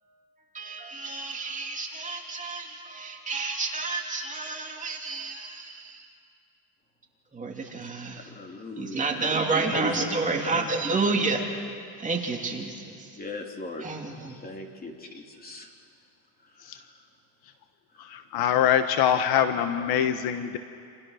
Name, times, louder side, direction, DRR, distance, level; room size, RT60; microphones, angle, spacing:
voice 1, 0.5-6.1 7.3-8.3 8.8-11.4 12.0-13.2 13.8-14.4, right 3 dB, 15° right, 1 dB, 2.9 m, -30 dB
voice 2, 8.1-9.2 9.6-10.6 13.2-13.9 14.4-15.7 16.7-16.9 18.0-18.1, left 2 dB, 20° left, 2 dB, 3.2 m, -40 dB
voice 3, 18.1-20.6, left 9 dB, 55° left, 9 dB, 1.4 m, -23 dB
28.0 x 27.5 x 6.5 m, 2.3 s
cardioid pair, 130°, 44 cm